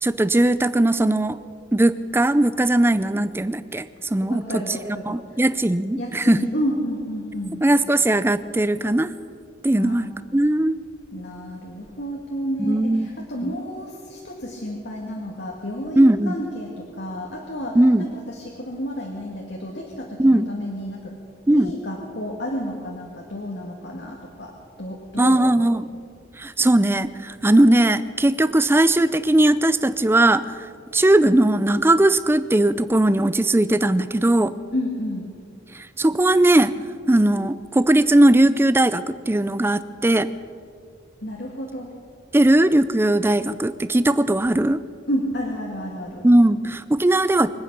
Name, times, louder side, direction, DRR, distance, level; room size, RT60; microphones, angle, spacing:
voice 1, 0.0-1.4 1.7-4.4 5.1-6.4 7.6-9.1 9.6-10.8 12.6-13.1 13.4-13.5 16.0-16.4 17.8-18.1 20.2-20.5 21.5-21.7 25.2-25.9 26.4-30.7 30.9-34.5 35.7-36.7 37.1-40.3 42.3-44.8 46.2-47.5, right 1 dB, 10° right, 14 dB, 0.4 m, -18 dB
voice 2, 4.2-5.4 6.0-7.6 9.8-10.1 11.1-21.1 21.5-25.7 34.7-35.3 41.2-41.9 45.1-46.3, equal, 65° left, -1 dB, 1.9 m, -31 dB
25.0 x 9.2 x 6.0 m, 2.3 s
head